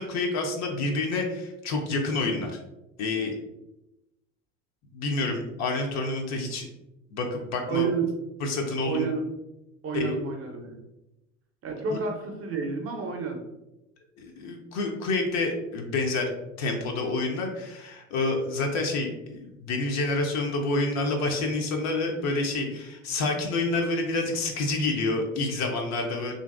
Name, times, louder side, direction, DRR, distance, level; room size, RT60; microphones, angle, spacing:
voice 1, 0.0-2.6 3.0-3.4 4.9-6.7 7.1-7.9 8.4-9.1 9.9-10.2 11.9-12.0 14.2-16.3 16.6-26.3, left 2 dB, 45° left, 2 dB, 0.6 m, -28 dB
voice 2, 7.7-8.1 8.8-9.2 9.8-10.8 11.6-13.4, right 5 dB, 35° right, 2 dB, 0.6 m, -30 dB
2.8 x 2.6 x 2.4 m, 0.95 s
hypercardioid pair, 70°, 40 cm